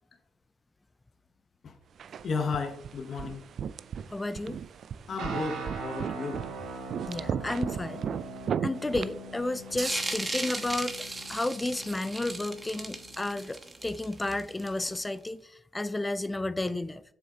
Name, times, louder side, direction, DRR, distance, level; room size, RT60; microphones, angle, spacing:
sound 1, 2.0-10.2, right 7 dB, 60° right, 0.3 m, -37 dB
voice 1, 2.2-3.4 5.1-6.4, left 4 dB, 50° left, 0.9 m, -33 dB
voice 2, 4.1-4.6 7.1-8.0 8.6-10.9 11.3-17.0, left 2 dB, 15° left, 0.4 m, -32 dB
sound 2, 5.2-13.4, right 3 dB, 85° right, 1.9 m, -42 dB
sound 3, 9.8-15.1, right 2 dB, 20° right, 1.1 m, -36 dB
7.3 x 6.3 x 2.8 m
cardioid pair, 90°, 0 cm